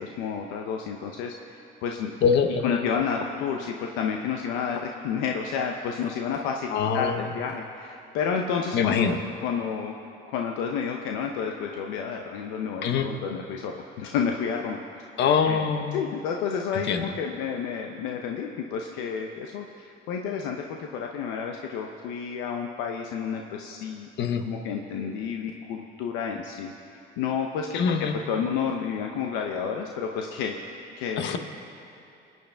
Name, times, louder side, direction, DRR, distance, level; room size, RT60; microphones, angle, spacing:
voice 1, 0.0-2.1 2.6-9.2 9.4-9.9 10.2-14.8 15.4-24.1 24.4-26.7 27.2-31.4, left 6 dB, 85° left, 2 dB, 0.8 m, -30 dB
voice 2, 2.2-2.7 6.7-7.2 8.7-9.2 12.8-13.1 15.2-16.0 16.9-17.0 24.2-24.4 27.7-28.1 31.2-31.4, left 6 dB, 65° left, 7 dB, 1.2 m, -23 dB
26.5 x 9.4 x 3.5 m, 2.7 s
supercardioid pair, 80°, 19 cm